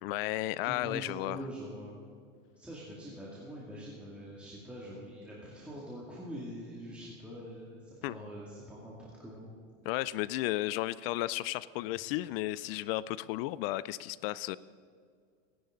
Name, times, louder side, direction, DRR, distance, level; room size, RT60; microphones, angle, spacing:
voice 1, 0.0-1.4 8.0-8.1 9.9-14.6, left 16 dB, 50° left, 18 dB, 0.4 m, -33 dB
voice 2, 0.6-2.0 2.6-9.5, equal, 5° right, -6 dB, 2.4 m, -44 dB
24.5 x 11.0 x 3.9 m, 2.1 s
supercardioid pair, 130°, 38 cm